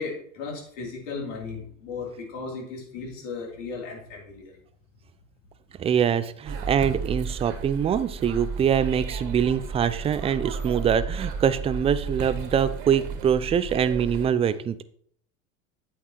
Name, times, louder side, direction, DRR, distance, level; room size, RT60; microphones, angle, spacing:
voice 1, 0.0-4.5, left 4 dB, 65° left, -1 dB, 3.6 m, -35 dB
voice 2, 5.8-14.8, right 8 dB, 15° right, 14 dB, 0.4 m, -24 dB
sound 1, 6.4-14.3, right 5 dB, 50° right, 1.9 m, -33 dB
8.7 x 8.3 x 3.1 m, 0.63 s
hypercardioid pair, 90°, 40 cm